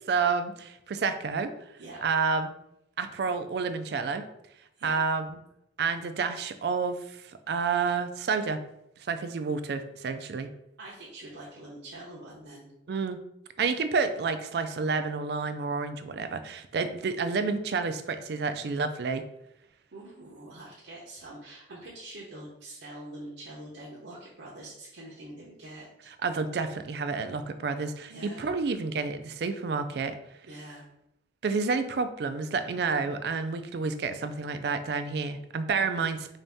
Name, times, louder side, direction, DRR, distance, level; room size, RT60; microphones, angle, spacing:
voice 1, 0.1-1.5 2.0-2.5 3.0-4.3 4.8-5.4 5.8-7.2 7.5-8.6 9.1-10.5 12.9-13.2 13.6-19.2 26.2-30.2 31.4-36.4, right 4 dB, 60° right, 10 dB, 0.3 m, -29 dB
voice 2, 10.8-12.7 19.9-26.1 28.1-28.5 30.5-30.8, right 1 dB, 80° right, -6 dB, 0.8 m, -45 dB
3.9 x 2.7 x 3.4 m, 0.80 s
head